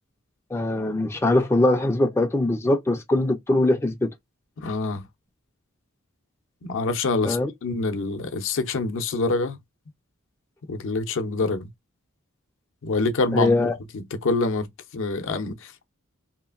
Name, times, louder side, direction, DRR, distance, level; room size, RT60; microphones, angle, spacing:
voice 1, 0.5-4.1 7.2-7.5 13.3-13.7, left 2 dB, 10° left, 0.3 m, -22 dB
voice 2, 4.6-5.0 6.6-9.6 10.7-11.7 12.8-13.6 13.9-14.7 14.9-15.9, left 3 dB, 65° left, 0.6 m, -26 dB
2.8 x 2.4 x 2.4 m
head